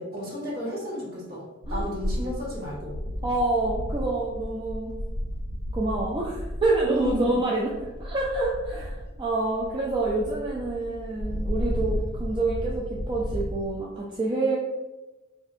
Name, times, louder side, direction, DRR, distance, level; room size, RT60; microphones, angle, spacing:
voice 1, 0.0-1.4 1.7-2.9 6.9-7.4, left 1 dB, 50° right, -6 dB, 1.3 m, -32 dB
sound 1, 1.6-13.7, equal, 65° left, 0.6 m, -33 dB
voice 2, 3.2-4.9 5.7-7.7 8.0-14.6, right 2 dB, 25° right, -4 dB, 0.4 m, -27 dB
4.0 x 2.6 x 2.5 m, 1.1 s
head